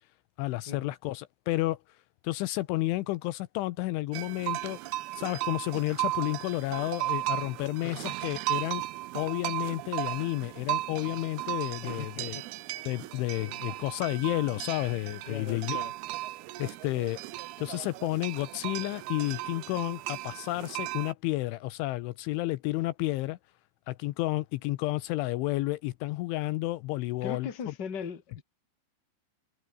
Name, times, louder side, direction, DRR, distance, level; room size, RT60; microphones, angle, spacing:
voice 1, 0.4-1.8 2.2-4.8 5.1-8.8 9.1-12.4 12.9-15.8 16.6-17.2 17.6-23.4 23.9-27.7, left 18 dB, 80° left, 3.1 m, -31 dB
sound 1, 4.1-21.1, right 17 dB, 85° right, 2.2 m, -36 dB
voice 2, 11.8-12.5 13.4-13.6 15.3-15.9 27.2-28.4, left 6 dB, 30° left, 2.3 m, -40 dB
omnidirectional pair, 5.8 m